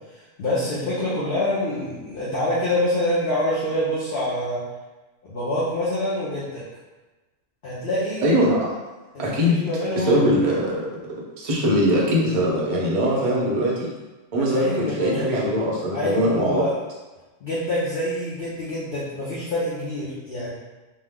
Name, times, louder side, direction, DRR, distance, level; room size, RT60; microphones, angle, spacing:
voice 1, 0.4-4.6 5.2-6.6 7.6-8.2 9.1-10.5 13.1-13.5 14.4-15.4 15.9-16.7 17.4-20.5, left 1 dB, 50° left, -9 dB, 0.8 m, -26 dB
voice 2, 8.2-8.7 9.2-9.6 9.9-10.8 11.4-13.9 14.3-16.7, equal, 40° right, -4 dB, 0.5 m, -21 dB
3.0 x 2.0 x 3.5 m, 1.2 s
omnidirectional pair, 1.4 m